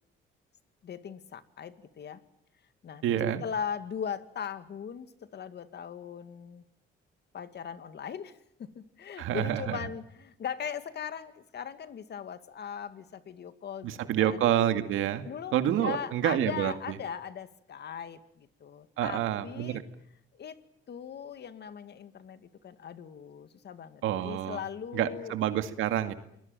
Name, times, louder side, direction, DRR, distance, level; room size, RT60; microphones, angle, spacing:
voice 1, 0.8-2.2 2.8-6.6 7.3-14.4 15.2-19.8 20.3-20.6 20.9-25.3, left 7 dB, 60° left, 11 dB, 2.2 m, -39 dB
voice 2, 3.0-3.4 9.2-9.8 13.8-15.2 15.5-16.7 19.0-19.8 24.0-24.6 24.9-26.1, right 11 dB, 90° right, 9 dB, 2.1 m, -28 dB
28.0 x 21.0 x 9.1 m, 0.76 s
cardioid pair, 90°, 20 cm